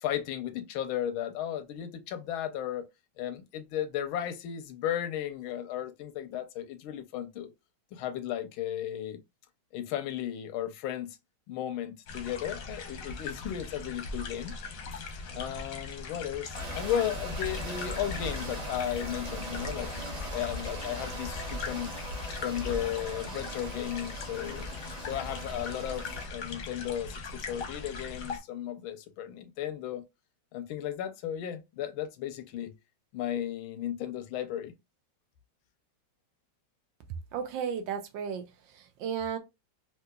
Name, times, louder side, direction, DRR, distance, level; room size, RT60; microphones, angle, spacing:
voice 1, 0.0-2.8 3.2-7.5 7.9-9.2 9.7-11.2 11.5-14.5 15.3-19.9 20.3-21.9 22.4-24.7 25.0-30.0 30.5-32.7 33.1-34.7, left 10 dB, 90° left, 1.4 m, -35 dB
sound 1, 12.1-28.4, left 3 dB, 60° left, 0.9 m, -40 dB
sound 2, 16.5-26.3, equal, 40° right, 0.6 m, -39 dB
voice 2, 37.3-38.4 38.7-39.4, right 7 dB, 75° right, 1.2 m, -34 dB
3.6 x 2.8 x 2.3 m
omnidirectional pair, 2.2 m